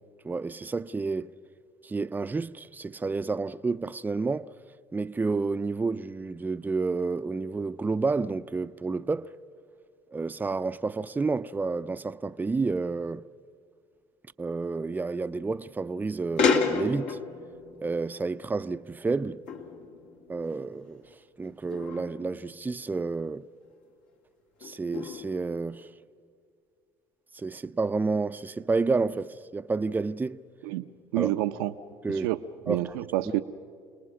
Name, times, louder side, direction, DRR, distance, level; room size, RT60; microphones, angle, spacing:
voice 1, 0.2-1.3 1.8-4.5 4.9-9.4 10.1-13.3 14.4-17.2 17.8-19.4 20.3-21.0 21.4-23.5 24.6-25.9 27.3-30.4 31.2-31.3 32.0-32.3 32.7-32.9, right 4 dB, 15° right, 0.5 m, -30 dB
sound 1, 16.4-19.2 19.5-21.0 21.7-23.0 23.7-23.8 24.6-25.9, left 5 dB, 75° left, 2.4 m, -32 dB
voice 2, 31.1-31.7 32.1-32.4 32.7-33.4, right 15 dB, 85° right, 0.7 m, -28 dB
29.5 x 19.5 x 6.3 m
supercardioid pair, 85°, 12 cm